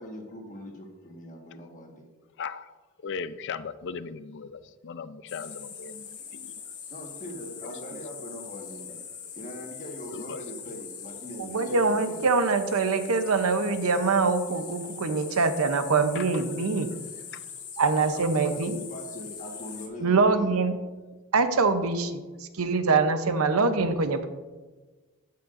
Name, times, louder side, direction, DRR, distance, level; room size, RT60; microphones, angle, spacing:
voice 1, 0.0-2.1 6.9-9.0 9.3-12.2 17.8-20.6, equal, 35° left, 1 dB, 1.5 m, -41 dB
voice 2, 2.4-2.7 3.0-6.6 7.6-8.0 9.2-9.3 10.1-10.4 16.1-16.4 17.3-17.4 22.7-22.8, left 5 dB, 55° left, 14 dB, 0.4 m, -38 dB
sound 1, 5.3-19.9, left 7 dB, 85° left, 1.8 m, -42 dB
voice 3, 11.4-16.9 17.8-18.7 20.0-20.7 21.3-22.2 22.6-24.3, right 4 dB, 70° right, 9 dB, 0.7 m, -24 dB
11.5 x 8.6 x 2.6 m, 1.3 s
head